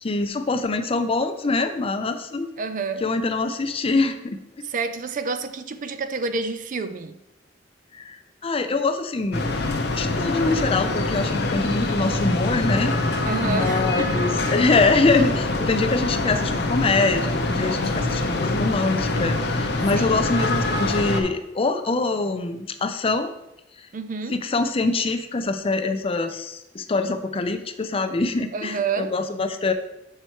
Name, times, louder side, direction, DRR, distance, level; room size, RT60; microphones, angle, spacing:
voice 1, 0.0-2.5 3.0-4.4 7.9-8.2 8.4-9.5 9.9-13.0 13.4-23.3 24.3-29.7, left 3 dB, 30° left, 0.5 m, -24 dB
voice 2, 2.6-3.1 4.6-7.2 13.3-14.3 19.9-20.1 23.9-24.4 28.5-29.2, right 4 dB, 45° right, 0.4 m, -29 dB
sound 1, 9.3-21.2, left 2 dB, 60° left, 0.8 m, -24 dB
6.7 x 4.5 x 4.5 m
head